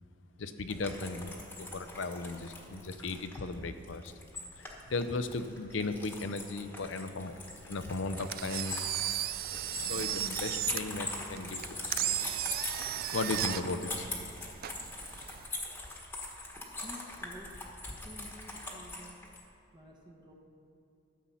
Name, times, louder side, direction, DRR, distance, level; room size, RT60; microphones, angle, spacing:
voice 1, 0.4-4.1 4.6-7.3 7.7-8.8 9.9-12.0 13.1-14.1, left 3 dB, 70° left, 10 dB, 0.6 m, -36 dB
sound 1, 0.7-19.4, left 2 dB, 10° left, 1.3 m, -42 dB
Engine, 8.2-15.5, right 13 dB, 50° right, 0.3 m, -36 dB
sound 2, 9.2-15.1, equal, 75° right, 2.4 m, -55 dB
voice 2, 16.8-17.6 18.0-19.2 19.7-20.3, equal, 25° right, 0 dB, 1.1 m, -50 dB
12.5 x 7.6 x 5.6 m, 2.7 s
head